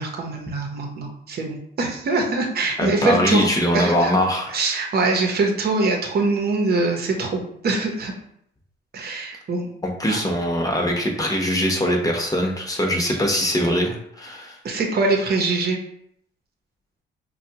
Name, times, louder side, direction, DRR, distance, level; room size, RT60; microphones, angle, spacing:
voice 1, 0.0-3.5 3.7-4.1 4.5-8.1 8.9-9.7 13.1-13.2 14.6-15.8, right 3 dB, 50° right, 2 dB, 0.9 m, -23 dB
voice 2, 2.8-4.6 9.8-14.6, equal, 20° left, 0 dB, 0.9 m, -22 dB
4.3 x 2.3 x 2.8 m, 0.71 s
cardioid pair, 90°, 20 cm